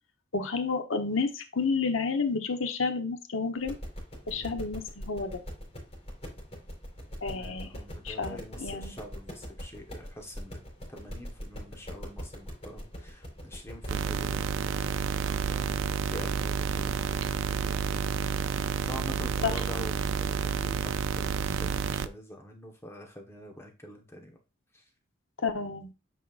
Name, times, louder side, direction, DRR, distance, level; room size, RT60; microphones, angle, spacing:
voice 1, 0.3-3.8 4.3-5.4 7.2-7.7 8.0-8.9 19.4-19.5 25.4-25.9, left 4 dB, 90° left, 6 dB, 1.0 m, -30 dB
sound 1, 3.6-14.1, equal, 35° left, 4.0 m, -42 dB
voice 2, 4.3-4.6 7.3-10.6 10.9-24.4 24.7-24.8, left 1 dB, 15° left, 1 dB, 1.2 m, -46 dB
sound 2, 13.9-22.1, right 6 dB, 80° right, 0.4 m, -30 dB
8.3 x 5.5 x 2.5 m, 0.28 s
head